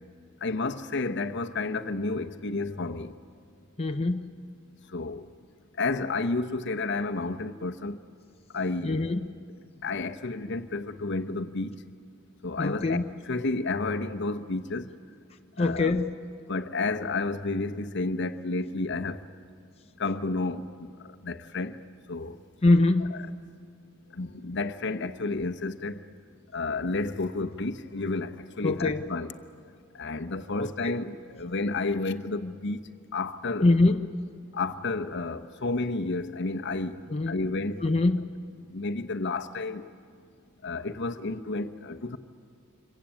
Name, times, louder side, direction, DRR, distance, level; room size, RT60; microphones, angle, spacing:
voice 1, 0.4-3.1 4.9-5.3 5.8-8.0 8.5-9.1 9.8-11.8 12.4-14.9 15.6-16.0 16.5-19.2 20.0-21.8 22.1-22.4 24.1-26.0 26.5-29.3 29.9-33.7 34.5-37.8 38.7-39.9 40.6-42.2, left 3 dB, 60° left, 1.0 m, -31 dB
voice 2, 3.8-4.3 8.8-9.3 12.6-13.1 15.6-16.2 22.6-23.1 28.6-29.1 30.6-31.0 33.6-34.1 37.1-37.4 37.8-38.2, left 2 dB, 30° left, 0.7 m, -24 dB
26.5 x 22.5 x 8.9 m
head